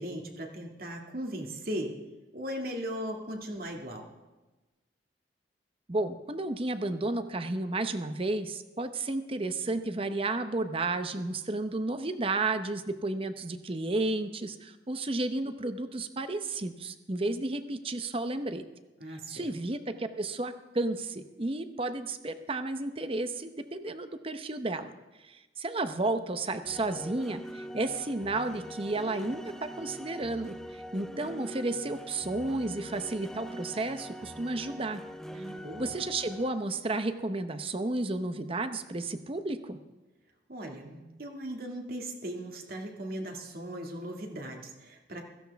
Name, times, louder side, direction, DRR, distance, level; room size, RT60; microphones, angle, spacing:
voice 1, 0.0-2.0 2.3-4.1 19.0-19.4 35.3-35.9 40.5-45.2, equal, 55° right, 1 dB, 2.1 m, -38 dB
voice 2, 5.9-18.6 19.3-24.9 25.2-35.0 35.3-35.4 35.8-39.8, right 2 dB, 30° right, 10 dB, 0.8 m, -32 dB
sound 1, 26.6-36.5, equal, 5° left, 0.5 m, -43 dB
16.5 x 14.5 x 3.5 m, 1.1 s
head